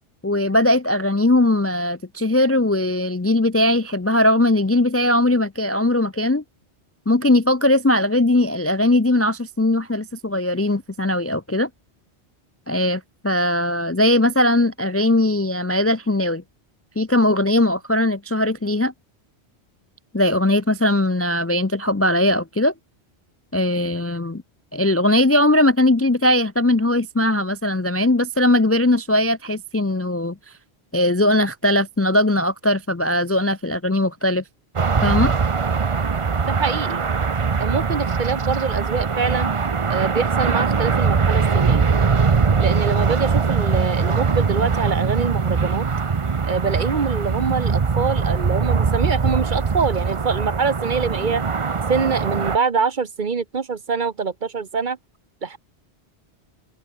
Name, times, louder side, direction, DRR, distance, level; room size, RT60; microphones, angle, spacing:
voice 1, 0.2-6.4 7.1-11.7 12.7-16.4 17.0-18.9 20.1-22.7 23.5-24.4 24.7-30.4 30.9-34.4 35.0-35.3, left 1 dB, 20° left, 0.5 m, -19 dB
sound 1, 34.8-52.6, right 5 dB, 35° right, 0.7 m, -21 dB
voice 2, 36.5-37.0 37.6-39.5 39.9-41.8 42.6-45.8 46.5-51.4 51.9-55.0 55.4-55.6, right 5 dB, 50° right, 1.1 m, -24 dB
omnidirectional pair, 1.1 m